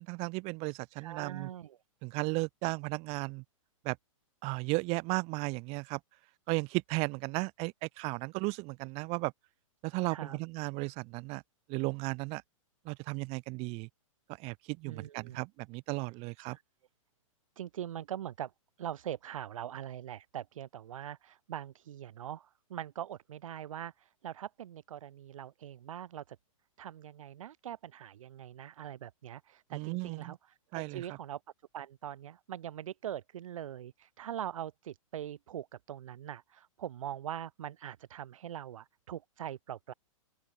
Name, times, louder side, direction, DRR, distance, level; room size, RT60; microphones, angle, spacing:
voice 1, 0.0-1.5 2.0-3.4 3.8-4.0 4.4-6.0 6.5-9.3 9.8-11.4 11.7-12.4 12.8-13.9 14.4-16.6 29.7-30.3 30.7-31.1, right 28 dB, 35° right, 1.6 m, -35 dB
voice 2, 1.0-1.8 10.1-10.4 14.9-15.4 16.4-16.6 17.6-18.5 18.8-26.4 26.8-30.4 30.7-31.4 31.7-39.9, right 11 dB, 75° right, 0.7 m, -42 dB
open air
hypercardioid pair, 130°, 17 cm